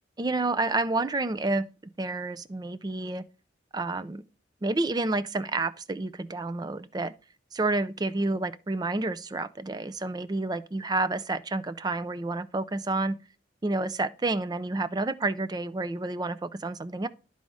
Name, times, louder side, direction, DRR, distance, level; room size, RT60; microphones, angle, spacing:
voice 1, 0.2-1.7 2.0-3.2 3.7-4.2 4.6-7.1 7.5-13.2 13.6-17.1, right 2 dB, 20° right, 0.4 m, -29 dB
12.0 x 4.1 x 4.8 m
head